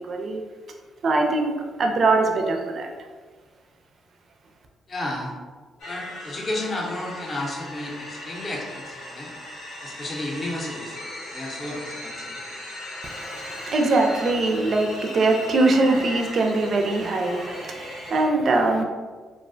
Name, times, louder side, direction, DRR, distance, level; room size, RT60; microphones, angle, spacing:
voice 1, 0.1-0.4 1.0-1.5 1.8-2.9 13.0-18.8, right 2 dB, 50° right, 2 dB, 0.4 m, -22 dB
voice 2, 4.9-5.3 5.8-9.3 9.8-11.0 11.3-12.4, left 1 dB, 35° left, -3 dB, 0.6 m, -32 dB
sound 1, 5.8-18.2, left 1 dB, 75° left, 0.7 m, -38 dB
2.3 x 2.1 x 2.5 m, 1.5 s
cardioid pair, 90°, 0 cm